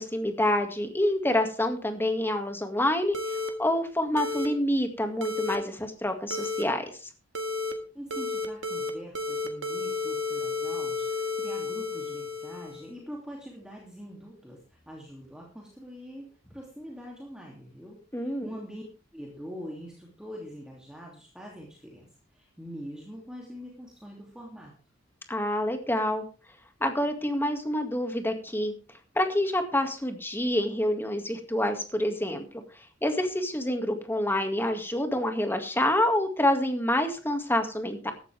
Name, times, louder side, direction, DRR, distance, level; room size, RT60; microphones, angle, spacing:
voice 1, 0.0-7.1 18.1-18.5 25.3-26.2 26.8-28.7 29.2-32.4 32.8-38.1, left 1 dB, 10° left, 6 dB, 2.1 m, -27 dB
sound 1, 3.1-3.5 4.2-4.5 5.2-5.6 6.3-6.6 7.3-7.7 8.1-8.9 9.1-12.9, left 3 dB, 80° right, 1.9 m, -32 dB
voice 2, 7.9-18.8 19.1-24.7, equal, 5° right, -2 dB, 2.7 m, -44 dB
15.5 x 12.5 x 3.5 m, 0.36 s
head